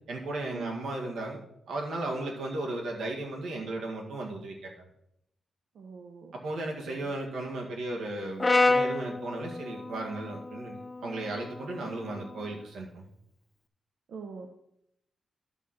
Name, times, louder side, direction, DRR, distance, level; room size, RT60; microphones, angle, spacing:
voice 1, 0.1-1.4 1.7-4.9 6.3-13.1, right 2 dB, 85° right, 0 dB, 1.9 m, -35 dB
voice 2, 5.7-6.3 6.9-7.1 14.1-14.6, right 5 dB, 65° right, 4 dB, 0.7 m, -42 dB
Brass instrument, 8.4-12.6, left 3 dB, 20° left, 0.4 m, -30 dB
10.5 x 6.2 x 4.3 m, 0.77 s
wide cardioid pair, 180°, 0 cm